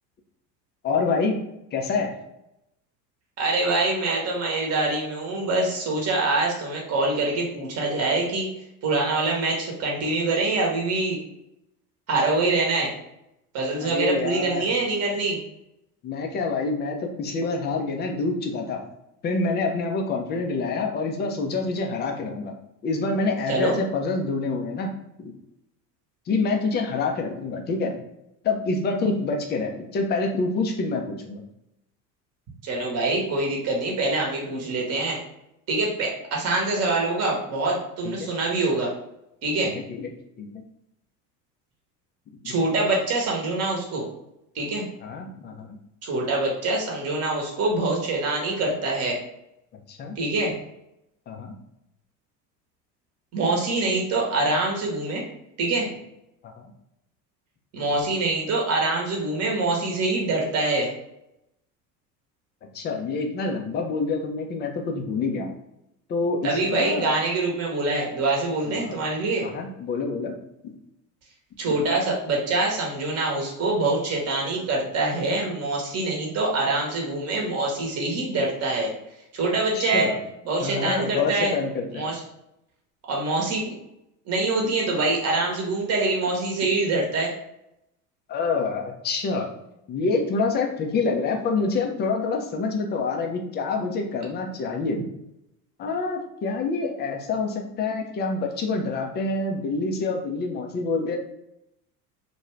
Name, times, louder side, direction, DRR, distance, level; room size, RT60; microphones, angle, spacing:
voice 1, 0.8-1.4 1.7-2.1 13.8-14.6 16.0-18.8 19.2-22.6 22.8-24.9 25.2-25.3 26.3-28.0 28.4-31.4 38.0-38.3 39.9-40.1 40.4-40.5 42.4-42.5 45.0-45.8 49.9-50.2 51.3-51.6 56.6-56.7 62.7-65.5 66.1-67.1 68.7-69.0 69.4-70.3 79.7-80.2 80.6-82.1 88.3-89.5 89.9-95.0 95.8-101.2, left 3 dB, 25° left, 3 dB, 0.4 m, -27 dB
voice 2, 3.4-8.5 8.8-11.2 12.1-12.9 13.5-15.4 23.5-23.7 32.6-35.2 35.7-38.9 39.4-39.7 42.4-44.1 44.5-44.8 46.0-49.2 50.2-50.5 53.3-55.2 55.6-55.9 57.7-60.9 66.4-69.5 71.6-78.9 79.3-80.1 80.4-81.5 81.9-82.2 83.1-83.7 84.3-87.3, right 2 dB, 30° right, -1 dB, 0.9 m, -25 dB
2.6 x 2.2 x 3.0 m, 0.84 s
hypercardioid pair, 75°, 49 cm